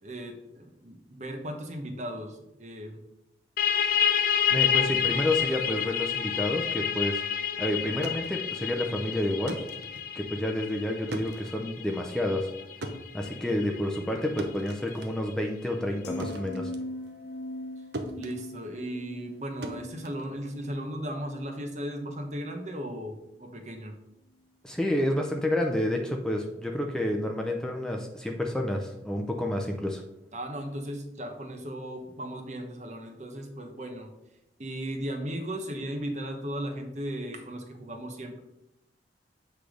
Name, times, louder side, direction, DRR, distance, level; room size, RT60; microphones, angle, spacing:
voice 1, 0.0-3.0 18.2-23.9 30.3-34.1 34.6-38.4, equal, 40° right, 4 dB, 1.0 m, -36 dB
sound 1, 3.6-14.9, left 9 dB, 55° left, 0.6 m, -29 dB
voice 2, 4.5-7.2 7.6-9.6 10.2-12.5 13.1-16.7 24.6-30.0, left 1 dB, 5° left, 1 dB, 0.6 m, -29 dB
sound 2, 7.8-17.7 17.9-20.9, right 1 dB, 70° right, 0.8 m, -42 dB
sound 3, 16.0-22.3 22.7-23.0, left 1 dB, 75° left, 1.0 m, -41 dB
8.2 x 3.3 x 5.1 m, 0.87 s
head